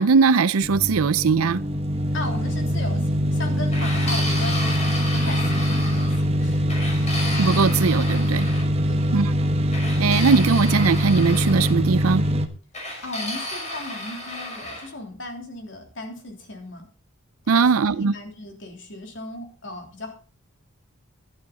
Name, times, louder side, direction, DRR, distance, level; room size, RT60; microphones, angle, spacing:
voice 1, 0.0-1.6 7.4-8.5 9.1-9.3 10.0-12.2 17.5-18.1, right 5 dB, 90° right, 0.5 m, -20 dB
sound 1, 0.6-12.5, equal, 30° right, 1.2 m, -23 dB
voice 2, 2.1-4.6 5.1-6.7 8.8-9.5 13.0-16.9 17.4-20.1, left 2 dB, 60° left, 3.4 m, -36 dB
sound 2, 3.7-6.2 6.7-8.6 9.7-11.8 12.7-14.9, left 1 dB, 30° left, 5.6 m, -32 dB
12.0 x 11.5 x 4.2 m
head